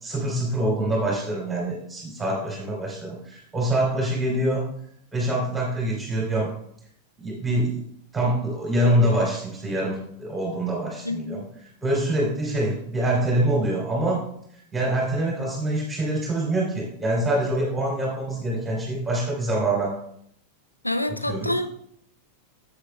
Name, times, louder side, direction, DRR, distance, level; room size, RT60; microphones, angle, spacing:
voice 1, 0.0-4.7 5.1-6.5 7.2-7.8 8.1-11.4 11.8-14.2 14.7-19.9 21.3-21.5, right 1 dB, 10° right, -4 dB, 2.9 m, -25 dB
voice 2, 11.0-11.4 20.8-21.9, left 1 dB, 85° left, 9 dB, 0.6 m, -27 dB
10.0 x 8.0 x 2.2 m, 0.68 s
figure-of-eight pair, 90°, 0 cm